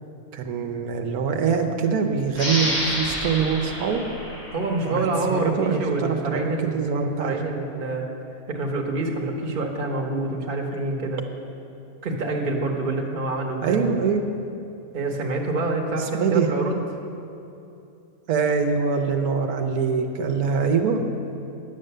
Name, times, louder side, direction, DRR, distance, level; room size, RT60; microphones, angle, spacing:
voice 1, 0.3-4.0 4.8-7.4 13.6-14.2 16.2-16.5 18.3-21.0, right 5 dB, 85° right, 3 dB, 1.3 m, -24 dB
sound 1, 2.3-5.6, equal, 50° left, 2.5 m, -29 dB
voice 2, 4.5-8.0 8.5-11.2 12.0-13.9 14.9-16.8, right 2 dB, 40° right, 1 dB, 1.2 m, -27 dB
10.0 x 7.6 x 6.6 m, 2.8 s
omnidirectional pair, 1.5 m